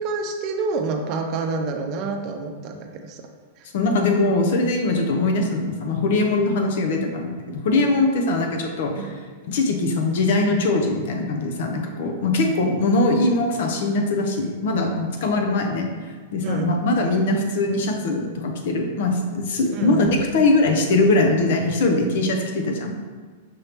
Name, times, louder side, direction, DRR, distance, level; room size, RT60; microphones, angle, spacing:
voice 1, 0.0-3.2 3.6-3.7 9.0-9.1 16.4-16.8 19.7-20.1, right 4 dB, 45° right, 4 dB, 0.5 m, -28 dB
voice 2, 3.7-9.1 9.5-15.9 16.3-22.9, left 2 dB, 65° left, 3 dB, 0.7 m, -21 dB
5.3 x 2.8 x 3.4 m, 1.4 s
hypercardioid pair, 120°, 0 cm